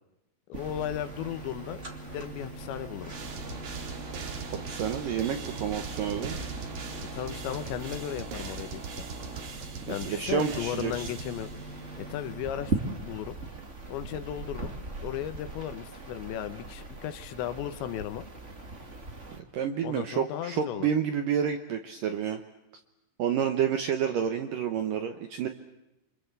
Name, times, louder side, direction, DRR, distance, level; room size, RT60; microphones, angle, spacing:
voice 1, 0.5-1.8 2.1-3.1 7.1-9.1 9.9-11.5 12.0-13.4 13.9-14.7 15.0-18.2 19.8-20.9, left 10 dB, 75° left, 11 dB, 3.4 m, -35 dB
sound 1, 0.5-19.4, right 3 dB, 25° right, 1.5 m, -40 dB
sound 2, 0.6-13.5, right 2 dB, 50° left, 5.0 m, -46 dB
sound 3, 3.1-11.9, right 5 dB, 50° right, 2.9 m, -42 dB
voice 2, 4.5-6.4 9.9-11.1 19.4-22.4 23.2-25.5, right 8 dB, 70° right, 8 dB, 2.1 m, -29 dB
27.5 x 25.0 x 8.2 m, 0.94 s
omnidirectional pair, 5.3 m